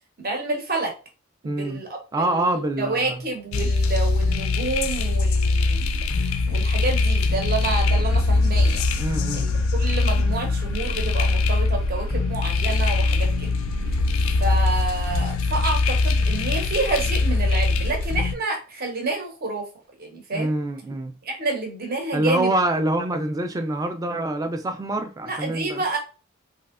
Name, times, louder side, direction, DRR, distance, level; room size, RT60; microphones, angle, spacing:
voice 1, 0.2-0.9 1.4-2.0 2.2-8.8 9.3-13.5 14.4-19.7 20.0-20.5 21.2-22.5 25.3-26.0, right 3 dB, 45° right, 0.8 m, -29 dB
voice 2, 1.4-1.8 2.1-3.2 9.0-9.5 20.3-21.1 22.1-25.8, right 1 dB, 15° right, 0.3 m, -25 dB
sound 1, 3.4-14.0, right 1 dB, 85° right, 0.8 m, -42 dB
sound 2, 3.5-18.3, left 3 dB, 75° left, 0.3 m, -22 dB
3.1 x 2.7 x 2.4 m
head